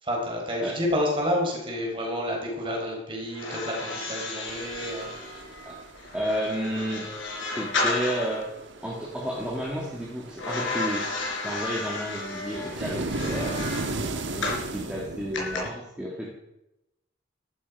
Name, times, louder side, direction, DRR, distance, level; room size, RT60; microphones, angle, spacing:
voice 1, 0.0-5.1, equal, 25° right, -1 dB, 4.4 m, -29 dB
sound 1, 3.3-8.5 10.4-14.7 15.3-15.6, left 2 dB, 90° left, 4.8 m, -33 dB
sound 2, 4.5-6.8 7.1-15.7, right 2 dB, 80° right, 1.4 m, -37 dB
voice 2, 6.1-7.1 7.5-8.5 8.8-11.1 11.4-13.6 14.3-16.3, equal, 5° right, -5 dB, 2.2 m, -31 dB
14.0 x 12.5 x 4.9 m, 0.89 s
head